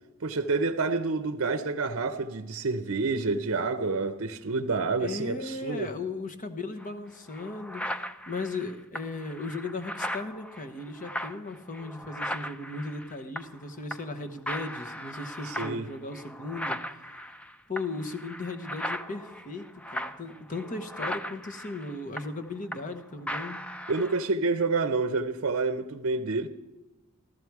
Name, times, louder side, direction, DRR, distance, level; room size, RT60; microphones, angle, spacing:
voice 1, 0.2-5.9 15.4-15.9 23.9-26.5, right 3 dB, 60° right, 0.7 m, -28 dB
voice 2, 5.0-8.0 8.3-16.8 17.7-23.6, left 3 dB, 35° left, 1.0 m, -37 dB
sound 1, 6.8-6.9 7.3-13.6 13.9-14.2 14.5-23.0 23.3-24.3, equal, 5° left, 0.4 m, -38 dB
14.5 x 13.0 x 4.7 m
head